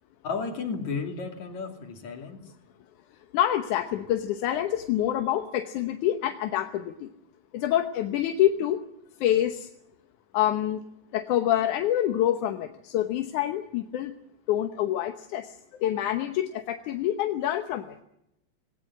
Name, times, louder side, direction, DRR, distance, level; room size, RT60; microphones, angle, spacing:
voice 1, 0.2-2.5, left 5 dB, 70° left, 4 dB, 4.0 m, -33 dB
voice 2, 3.3-7.1 7.5-8.8 9.2-9.7 10.3-10.8 11.1-14.1 14.5-18.0, left 12 dB, 85° left, 7 dB, 2.6 m, -26 dB
19.5 x 18.5 x 9.9 m, 0.83 s
omnidirectional pair, 3.4 m